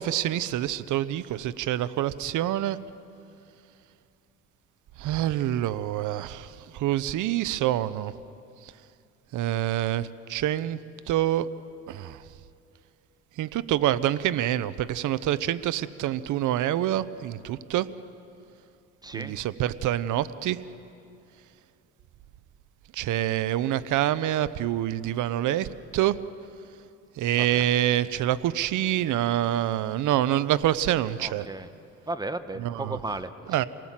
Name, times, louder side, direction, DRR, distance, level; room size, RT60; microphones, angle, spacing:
voice 1, 0.0-2.8 5.0-8.1 9.3-10.8 11.1-11.5 11.9-12.2 13.4-17.9 19.1-20.6 22.9-26.2 27.2-31.5 32.6-33.0 33.5-33.7, right 12 dB, 80° right, 15 dB, 0.8 m, -26 dB
voice 2, 19.0-19.4 27.4-27.7 31.2-31.7 32.1-33.7, right 2 dB, 15° right, 10 dB, 1.2 m, -35 dB
27.0 x 18.5 x 7.4 m, 2.5 s
cardioid pair, 90°, 30 cm